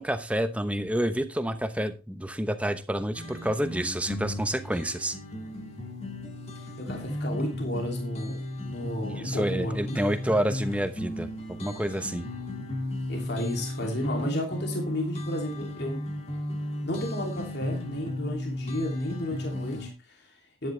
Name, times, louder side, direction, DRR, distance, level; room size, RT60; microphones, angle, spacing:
voice 1, 0.0-5.2 9.1-11.3 11.6-12.3, right 1 dB, 5° right, 9 dB, 0.9 m, -28 dB
sound 1, 3.1-19.9, left 1 dB, 30° left, 2.0 m, -35 dB
voice 2, 6.6-10.0 13.1-16.0 16.8-20.7, left 1 dB, 55° left, 1 dB, 2.8 m, -33 dB
11.5 x 10.5 x 3.3 m, 0.29 s
head